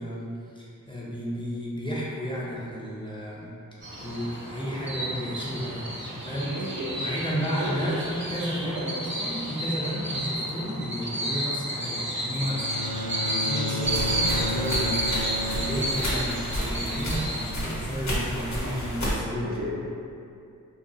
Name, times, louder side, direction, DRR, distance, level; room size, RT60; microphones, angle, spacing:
voice 1, 0.0-3.5 4.0-6.7 7.0-19.5, equal, 15° left, -7 dB, 0.6 m, -32 dB
sound 1, 3.8-17.5, right 1 dB, 35° right, 1.0 m, -31 dB
voice 2, 6.5-7.1 7.6-8.1 8.6-9.1 19.4-19.7, right 1 dB, 65° right, -3 dB, 0.5 m, -34 dB
Bowed string instrument, 12.4-16.5, left 2 dB, 80° left, 1.2 m, -32 dB
sound 2, 13.8-19.1, equal, 50° left, 1.0 m, -31 dB
2.6 x 2.5 x 2.3 m, 2.5 s
cardioid pair, 55°, 35 cm